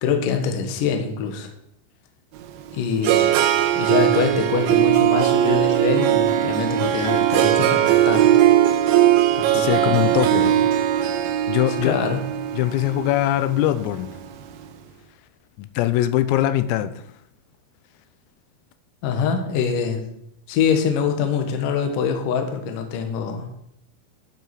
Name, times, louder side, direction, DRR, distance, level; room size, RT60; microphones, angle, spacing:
voice 1, 0.0-1.5 2.7-3.4 3.7-8.3 9.4-10.6 11.8-12.2 19.0-20.0 20.5-23.5, left 6 dB, 65° left, 2.2 m, -24 dB
Harp, 2.4-14.5, right 12 dB, 80° right, 3.5 m, -19 dB
voice 2, 9.5-10.5 11.5-12.0 12.5-14.2 15.6-17.0, left 14 dB, 85° left, 3.4 m, -22 dB
12.0 x 6.1 x 6.1 m
omnidirectional pair, 6.0 m